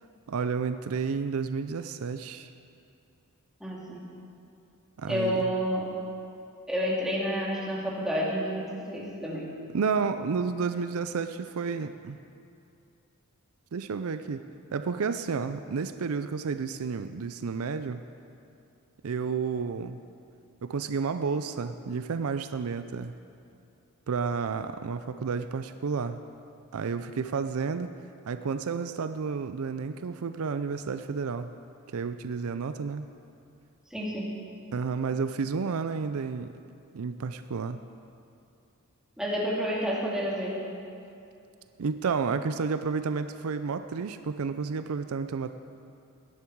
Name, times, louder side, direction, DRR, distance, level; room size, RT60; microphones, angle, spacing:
voice 1, 0.3-2.5 5.0-5.4 9.7-12.2 13.7-14.4 14.7-18.0 19.0-20.0 20.6-23.1 24.1-26.2 26.7-27.9 28.3-31.5 31.9-33.1 34.7-36.5 36.9-37.8 41.8-45.5, right 5 dB, 70° right, 10 dB, 0.5 m, -31 dB
voice 2, 3.6-4.1 5.1-5.9 6.7-9.5 33.9-34.3 39.2-40.6, equal, 5° right, -6 dB, 2.4 m, -29 dB
17.0 x 11.0 x 4.7 m, 2.6 s
head